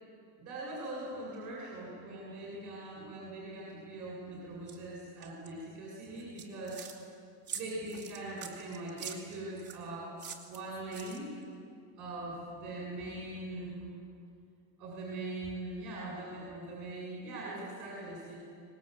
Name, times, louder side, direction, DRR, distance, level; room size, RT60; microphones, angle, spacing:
voice 1, 0.4-6.8 7.5-10.1 10.5-11.3 12.0-13.9 14.8-18.3, right 2 dB, 45° right, -4 dB, 7.7 m, -41 dB
sound 1, 4.7-4.8 5.2-5.5 6.2-7.0 7.5-9.8 10.2-11.4, right 7 dB, 25° right, 2.6 m, -44 dB
25.5 x 20.5 x 8.5 m, 2.3 s
cardioid pair, 165°, 43 cm